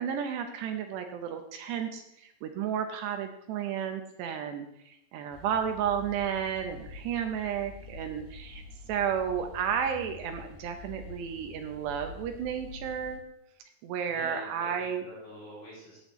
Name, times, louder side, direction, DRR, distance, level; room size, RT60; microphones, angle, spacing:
voice 1, 0.0-8.6 8.9-13.2 13.8-15.0, right 8 dB, 75° right, 6 dB, 2.7 m, -32 dB
sound 1, 5.3-13.2, left 3 dB, 70° left, 3.0 m, -47 dB
voice 2, 14.1-16.0, equal, 55° left, -8 dB, 4.6 m, -46 dB
14.0 x 9.5 x 3.1 m, 0.77 s
omnidirectional pair, 5.4 m